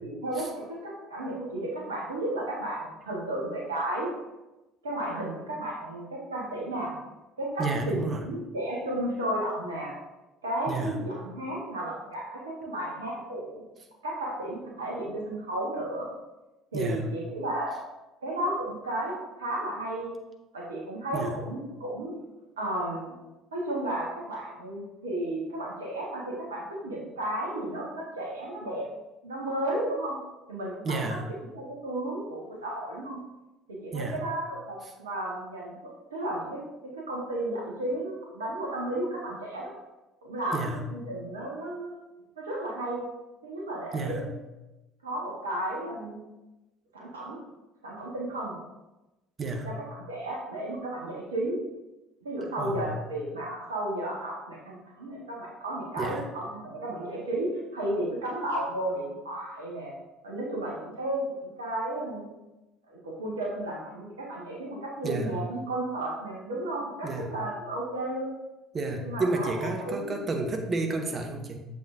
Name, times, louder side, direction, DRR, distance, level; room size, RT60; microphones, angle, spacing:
voice 1, 0.0-4.1 4.8-6.9 7.4-9.9 10.4-13.6 14.0-16.1 16.7-17.7 18.2-20.1 20.5-22.2 22.6-23.1 23.5-28.8 29.2-30.2 30.5-31.0 31.5-33.2 33.7-35.7 36.1-39.7 40.2-42.0 42.4-43.1 43.4-44.3 45.0-46.2 46.9-47.4 47.8-48.6 49.6-51.6 52.2-59.9 60.2-62.2 62.9-68.4 69.0-70.2, right 1 dB, 80° right, -3 dB, 1.4 m, -33 dB
voice 2, 7.6-8.2 10.7-11.0 16.7-17.1 21.1-21.4 30.8-31.3 33.9-34.2 40.5-40.9 43.9-44.3 49.4-49.8 52.6-53.0 56.0-56.2 65.0-65.4 67.0-67.4 68.7-71.7, right 2 dB, 35° right, 4 dB, 0.9 m, -31 dB
7.0 x 5.8 x 2.6 m, 1.0 s
figure-of-eight pair, 55°, 0 cm